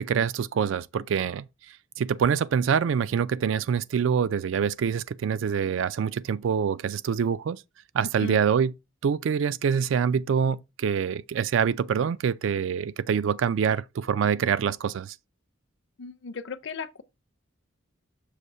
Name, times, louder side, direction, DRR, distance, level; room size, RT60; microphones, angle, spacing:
voice 1, 0.0-1.5 2.0-7.6 7.9-8.7 9.0-15.1, right 7 dB, 70° right, 0.3 m, -25 dB
voice 2, 16.0-17.0, left 5 dB, 60° left, 0.5 m, -36 dB
6.4 x 2.7 x 5.4 m
head